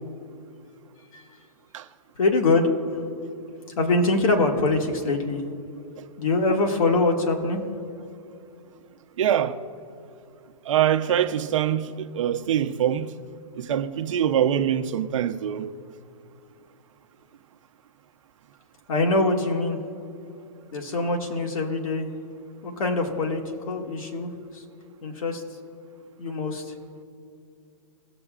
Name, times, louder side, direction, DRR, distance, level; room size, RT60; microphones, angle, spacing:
voice 1, 2.2-3.0 3.8-5.4 6.2-7.6 18.9-19.8 20.7-22.1 22.6-24.6 25.0-25.4 26.2-26.7, left 2 dB, 70° left, 1.9 m, -24 dB
voice 2, 9.2-9.6 10.7-13.1 13.6-15.7, right 10 dB, 60° right, 0.8 m, -24 dB
19.5 x 7.0 x 2.5 m
hypercardioid pair, 155°, 18 cm